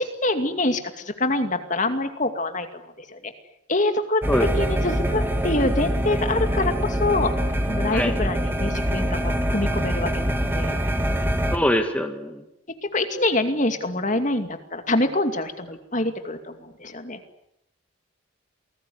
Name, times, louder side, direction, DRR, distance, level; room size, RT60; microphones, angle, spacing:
voice 1, 0.0-3.3 3.7-4.2 4.6-10.8 12.9-17.2, left 2 dB, 35° left, 7 dB, 2.4 m, -25 dB
sound 1, 4.2-11.6, equal, 10° right, 2.1 m, -24 dB
voice 2, 11.5-12.4, left 1 dB, 5° left, 4 dB, 2.0 m, -23 dB
28.0 x 19.5 x 9.6 m, 0.79 s
head